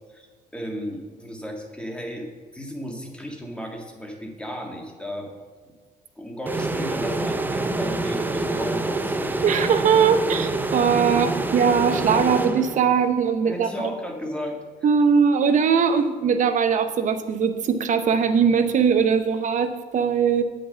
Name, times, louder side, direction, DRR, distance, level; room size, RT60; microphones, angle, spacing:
voice 1, 0.5-5.3 6.2-9.1 13.4-14.6, equal, 5° left, 1 dB, 1.7 m, -34 dB
sound 1, 6.5-13.1, right 2 dB, 10° right, 0.6 m, -26 dB
voice 2, 9.4-13.9 14.8-20.4, right 6 dB, 50° right, 9 dB, 0.8 m, -20 dB
8.5 x 5.3 x 7.5 m, 1.4 s
cardioid pair, 110°, 17 cm